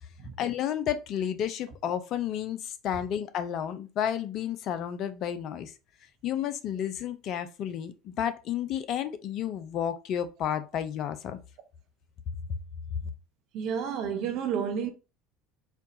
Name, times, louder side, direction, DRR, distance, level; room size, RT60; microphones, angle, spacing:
voice 1, 0.4-5.7 6.2-11.4, left 9 dB, 50° left, 0.5 m, -31 dB
voice 2, 13.5-14.9, right 7 dB, 55° right, 0.8 m, -30 dB
4.3 x 2.4 x 2.7 m
hypercardioid pair, 70°, 0 cm